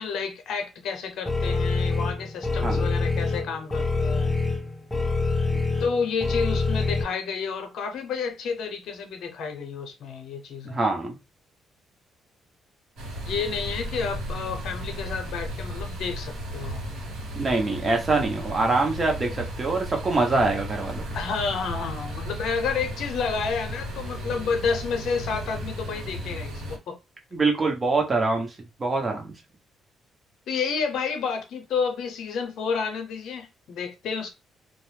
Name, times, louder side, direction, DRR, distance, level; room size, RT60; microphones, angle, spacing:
voice 1, 0.0-4.4 5.8-10.8 13.2-16.8 21.1-27.0 30.5-34.3, left 5 dB, 75° left, 0.7 m, -30 dB
sound 1, 1.3-7.0, left 3 dB, 15° left, 0.6 m, -25 dB
voice 2, 10.6-11.2 17.3-21.0 27.3-28.5 28.8-29.3, right 3 dB, 30° right, 0.9 m, -24 dB
sound 2, 13.0-26.8, equal, 85° right, 1.1 m, -35 dB
2.3 x 2.1 x 3.2 m
cardioid pair, 90°, 0 cm